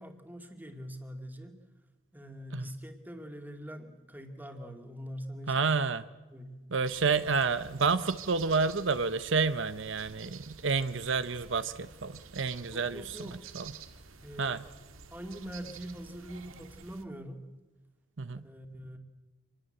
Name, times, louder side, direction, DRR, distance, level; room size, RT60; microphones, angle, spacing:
voice 1, 0.0-1.6 2.1-5.7 6.3-6.6 12.7-13.4 14.2-14.6 15.1-17.5 18.4-19.0, equal, 10° right, 5 dB, 2.4 m, -43 dB
voice 2, 5.5-6.0 6.7-13.2 13.5-13.7 14.4-14.6 18.2-18.4, right 4 dB, 65° right, 12 dB, 0.8 m, -29 dB
sound 1, 6.8-17.0, right 6 dB, 90° right, 1.9 m, -50 dB
27.0 x 21.0 x 7.8 m, 1.2 s
head